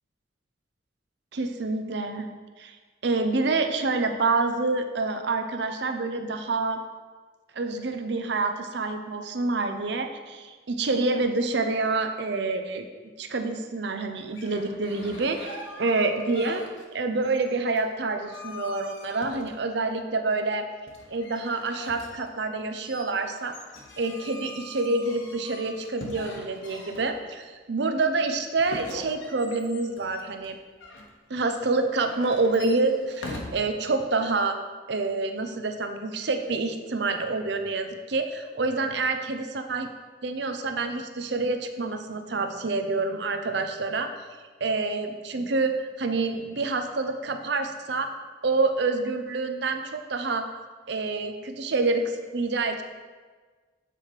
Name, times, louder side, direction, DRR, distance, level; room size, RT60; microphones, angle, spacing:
voice 1, 1.3-2.3 2.6-2.8 3.0-6.8 7.5-12.9 13.2-16.6 16.9-20.7 21.1-23.6 24.0-30.6 31.3-34.6 34.9-39.9 40.2-44.1 44.6-48.1 48.4-50.4 50.9-52.8, right 3 dB, 60° right, 7 dB, 0.6 m, -27 dB
sound 1, 14.2-17.0 17.2-19.9 20.9-27.4 28.6-31.1 31.9-33.4, left 1 dB, 80° left, 1.1 m, -43 dB
7.7 x 4.9 x 4.4 m, 1.4 s
head